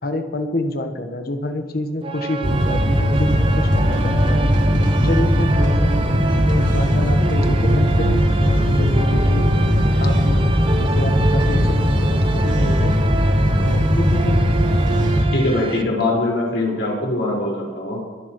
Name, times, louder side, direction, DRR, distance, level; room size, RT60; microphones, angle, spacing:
voice 1, 0.0-4.4 5.0-6.0 6.5-9.5 10.0-10.5 10.8-13.0 13.6-14.4, left 1 dB, 55° left, 6 dB, 1.3 m, -27 dB
sound 1, 2.0-15.8, right 3 dB, 30° right, 0.7 m, -28 dB
sound 2, 2.4-15.3, equal, 45° right, 2.2 m, -18 dB
voice 2, 15.3-18.0, left 2 dB, 70° left, -3 dB, 4.9 m, -22 dB
24.0 x 11.0 x 3.1 m, 1.4 s
head